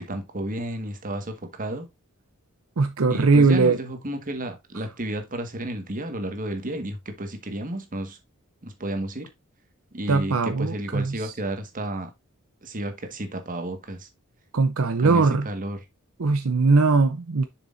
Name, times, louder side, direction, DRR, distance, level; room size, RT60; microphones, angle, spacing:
voice 1, 0.1-1.9 3.1-8.2 8.6-9.3 9.9-12.1 12.6-14.1 15.0-15.8, right 1 dB, 40° right, 1.6 m, -32 dB
voice 2, 2.8-3.8 10.1-11.1 14.5-15.5 16.2-17.5, right 4 dB, 70° right, 0.7 m, -20 dB
7.4 x 6.6 x 2.6 m
head